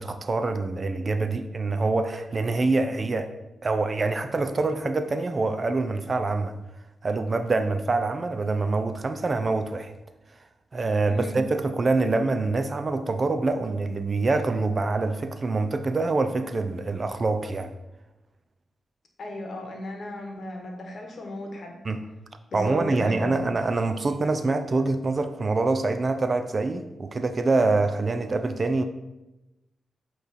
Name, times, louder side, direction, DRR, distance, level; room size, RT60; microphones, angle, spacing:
voice 1, 0.0-3.3 3.6-6.5 7.0-9.9 10.7-17.7 21.8-22.0 22.5-28.8, right 3 dB, 40° right, 9 dB, 0.4 m, -25 dB
voice 2, 11.1-11.4 19.2-21.8 22.5-23.3, left 1 dB, 60° left, 2 dB, 1.1 m, -35 dB
8.0 x 3.0 x 4.1 m, 1.0 s
cardioid pair, 85°, 0 cm